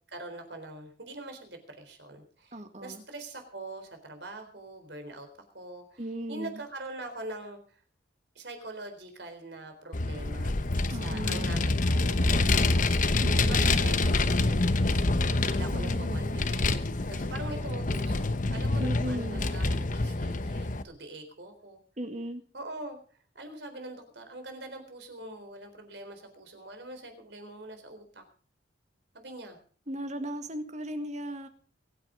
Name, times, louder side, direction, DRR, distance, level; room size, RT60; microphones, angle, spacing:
voice 1, 0.1-5.3 5.5-6.0 6.3-7.8 8.3-10.5 10.8-12.4 12.7-12.9 13.4-14.6 15.5-16.8 17.1-18.3 18.5-21.8 22.5-28.2 29.1-29.6, right 2 dB, 65° right, 6 dB, 4.0 m, -43 dB
voice 2, 2.5-3.0 6.0-6.6 10.9-11.5 13.2-13.8 15.0-15.2 15.6-16.4 18.8-19.4 22.0-22.4 29.9-31.5, equal, 40° right, 8 dB, 1.9 m, -37 dB
Vehicle, 9.9-20.8, left 2 dB, 45° left, 1.0 m, -26 dB
23.0 x 9.6 x 5.1 m, 0.43 s
head